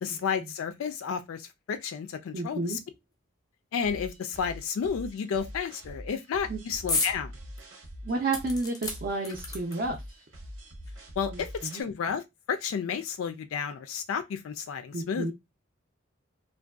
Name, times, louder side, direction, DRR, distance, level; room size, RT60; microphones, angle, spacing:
voice 1, 0.0-2.8 3.7-7.4 11.2-15.3, left 6 dB, 85° left, 0.3 m, -32 dB
voice 2, 2.3-2.8 6.5-6.6 8.0-10.0 11.3-11.8 14.9-15.3, right 3 dB, 45° right, 0.4 m, -31 dB
sound 1, 3.8-11.8, equal, 85° right, 0.8 m, -44 dB
sound 2, 6.9-7.2 7.6-7.7 8.3-10.0 10.9-11.0 11.2-11.3, left 3 dB, 20° left, 0.4 m, -32 dB
2.6 x 2.2 x 2.3 m
head